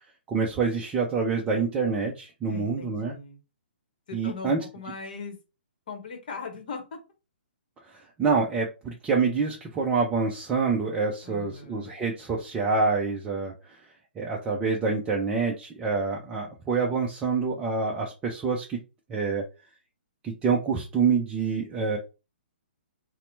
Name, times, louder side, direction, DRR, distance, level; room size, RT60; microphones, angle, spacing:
voice 1, 0.3-3.1 4.1-4.6 7.9-13.8 14.2-18.8 19.1-19.4 20.2-22.0, right 4 dB, 15° right, -2 dB, 0.5 m, -26 dB
voice 2, 2.5-3.4 4.1-5.4 5.9-6.8 11.2-12.0, left 4 dB, 45° left, 5 dB, 1.0 m, -39 dB
4.1 x 2.1 x 2.6 m, 0.29 s
figure-of-eight pair, 125°, 6 cm